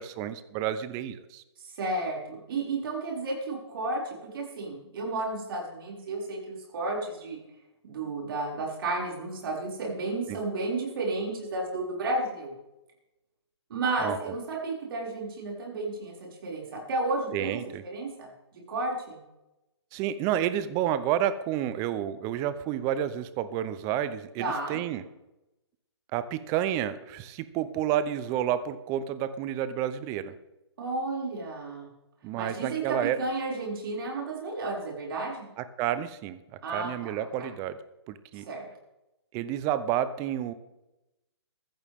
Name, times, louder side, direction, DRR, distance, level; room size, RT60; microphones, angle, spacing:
voice 1, 0.0-1.4 10.3-10.4 14.0-14.3 17.3-17.8 19.9-25.0 26.1-30.3 32.2-33.2 35.6-36.4 36.7-37.8 38.1-38.4 39.3-40.5, right 10 dB, 20° right, 14 dB, 0.7 m, -30 dB
voice 2, 1.8-4.0 4.3-7.4 7.8-12.5 13.7-19.2 24.4-24.8 30.8-31.9 32.4-35.5 36.6-37.5 38.3-38.7, right 2 dB, 55° right, -3 dB, 6.2 m, -32 dB
14.5 x 14.5 x 3.7 m, 0.95 s
hypercardioid pair, 150°, 15 cm